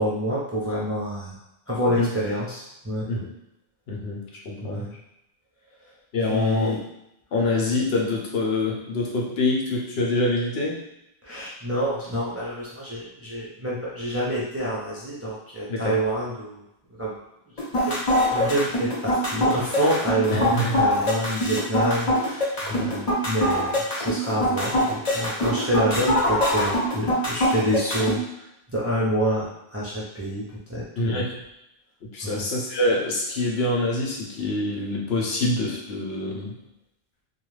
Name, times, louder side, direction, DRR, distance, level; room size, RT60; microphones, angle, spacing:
voice 1, 0.0-1.4 1.7-3.1 4.6-4.9 6.2-6.8 11.2-16.6 17.0-17.2 17.5-17.6 17.8-18.0 18.3-30.4 30.7-31.2 32.2-32.5, equal, 20° right, -8 dB, 0.5 m, -27 dB
voice 2, 3.9-4.8 6.1-6.7 7.3-10.8 15.7-16.0 20.3-20.8 22.7-22.9 31.0-31.3 32.1-36.5, left 2 dB, 80° left, -2 dB, 0.9 m, -25 dB
sound 1, 17.6-28.2, left 1 dB, 40° left, 0.8 m, -23 dB
2.4 x 2.2 x 3.1 m, 0.85 s
omnidirectional pair, 1.1 m